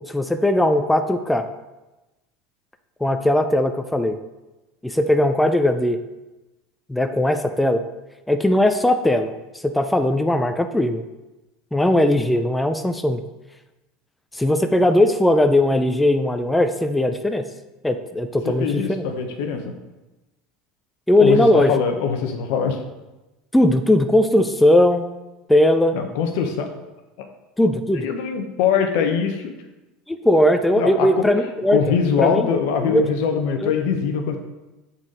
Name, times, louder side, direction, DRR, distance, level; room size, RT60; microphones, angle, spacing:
voice 1, 0.1-1.5 3.0-4.2 4.8-6.0 6.9-7.8 8.3-11.0 11.7-13.2 14.3-17.4 17.8-19.0 21.1-21.7 23.5-25.1 25.5-26.0 27.6-28.1 30.1-31.8 32.2-32.5 32.8-33.0 33.6-33.7, left 1 dB, 5° left, 7 dB, 0.4 m, -18 dB
voice 2, 18.4-19.7 21.2-22.8 25.9-26.7 27.2-27.3 27.9-29.5 30.8-31.3 31.7-34.4, left 6 dB, 70° left, 5 dB, 0.8 m, -22 dB
7.2 x 4.0 x 3.8 m, 1.0 s
hypercardioid pair, 95°, 0 cm